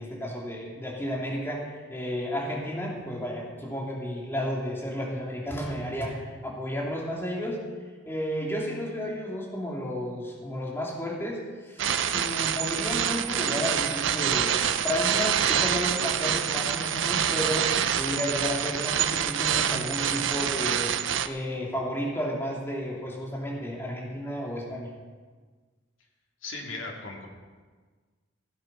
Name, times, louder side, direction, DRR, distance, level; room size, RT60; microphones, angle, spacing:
voice 1, 0.0-7.6 8.1-20.9 21.2-24.9, equal, 10° left, -3 dB, 2.8 m, -32 dB
sound 1, 11.8-21.3, right 9 dB, 70° right, 0.6 m, -26 dB
voice 2, 26.4-27.3, left 3 dB, 85° left, -1 dB, 2.8 m, -37 dB
16.5 x 8.9 x 5.5 m, 1.4 s
head